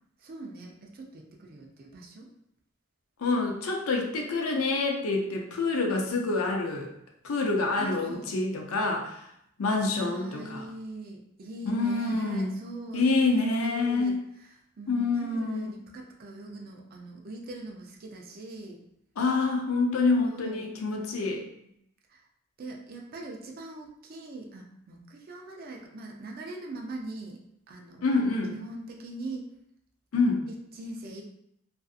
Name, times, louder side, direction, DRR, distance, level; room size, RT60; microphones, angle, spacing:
voice 1, 0.2-2.3 6.1-6.3 7.8-8.3 9.9-14.1 14.8-18.8 20.2-20.6 21.3-21.7 22.1-22.2 22.6-27.4 27.7-29.5 30.7-31.2, right 2 dB, 45° right, 0 dB, 0.4 m, -41 dB
voice 2, 3.2-6.9 7.2-9.2 9.6-10.6 11.7-12.5 12.9-14.2 14.9-15.7 19.2-21.4 28.0-28.6 30.1-30.4, left 3 dB, 75° left, 1 dB, 0.5 m, -27 dB
2.5 x 2.4 x 2.3 m, 0.75 s
head